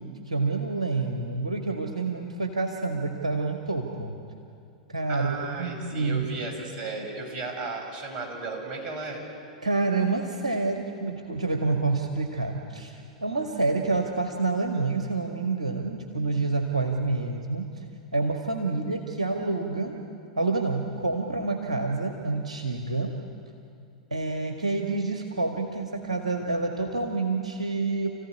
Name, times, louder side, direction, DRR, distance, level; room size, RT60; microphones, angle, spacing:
voice 1, 0.0-4.2 4.9-6.3 9.6-17.7 18.1-20.0 20.4-23.1 24.1-28.1, right 3 dB, 80° right, 3 dB, 1.9 m, -28 dB
voice 2, 5.1-9.2, right 3 dB, 35° right, 1 dB, 7.2 m, -35 dB
29.0 x 15.5 x 9.8 m, 2.5 s
figure-of-eight pair, 95°, 4 cm